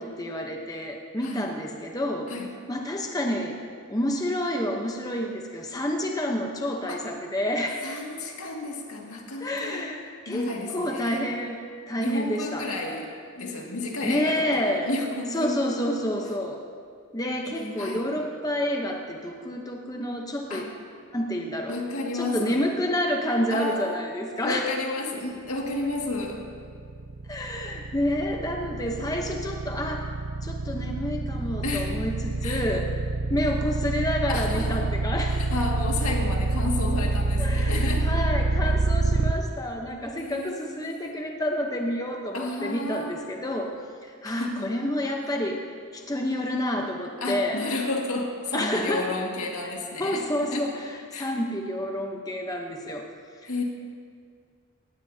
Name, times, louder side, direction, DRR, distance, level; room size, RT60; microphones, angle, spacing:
voice 1, 0.0-2.3 2.7-3.6 3.9-7.9 9.4-10.5 10.7-11.6 11.9-12.7 14.0-14.9 15.3-16.6 17.1-20.7 21.1-21.8 22.1-24.7 27.3-30.1 30.4-33.0 33.3-35.5 37.4-47.6 48.5-49.1 50.0-53.1 53.4-53.6, left 1 dB, 15° left, 1 dB, 0.9 m, -29 dB
voice 2, 7.8-9.8 10.3-11.2 12.0-13.1 13.4-15.6 17.6-18.0 20.5-20.7 21.7-22.7 23.5-24.0 24.4-26.4 31.6-32.0 32.4-32.6 34.3-34.8 35.3-38.1 40.2-41.2 42.3-43.2 44.2-44.7 47.2-50.6 51.1-51.3 53.5-53.6, left 2 dB, 85° left, 0 dB, 2.0 m, -32 dB
sound 1, 26.0-39.3, right 3 dB, 75° right, 0.5 m, -26 dB
19.0 x 15.5 x 2.8 m, 2.2 s
head